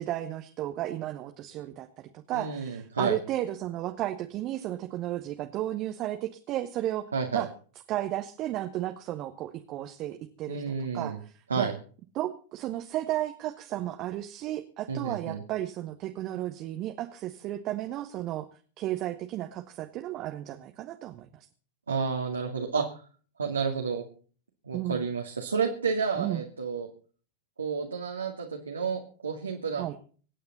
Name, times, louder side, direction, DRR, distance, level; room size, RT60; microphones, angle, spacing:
voice 1, 0.0-1.9 2.3-7.0 7.3-7.5 7.9-10.6 10.9-11.7 12.1-18.5 18.8-21.5 24.7-25.0 26.2-26.4 29.8-30.0, right 14 dB, 35° right, 7 dB, 1.2 m, -33 dB
voice 2, 2.3-3.2 7.1-7.5 10.5-11.2 11.5-11.7 14.9-15.4 21.9-22.9 23.4-24.0 24.7-26.9 27.6-29.8, right 5 dB, 75° right, 2 dB, 2.1 m, -30 dB
25.5 x 9.4 x 4.1 m, 0.42 s
figure-of-eight pair, 90°, 0 cm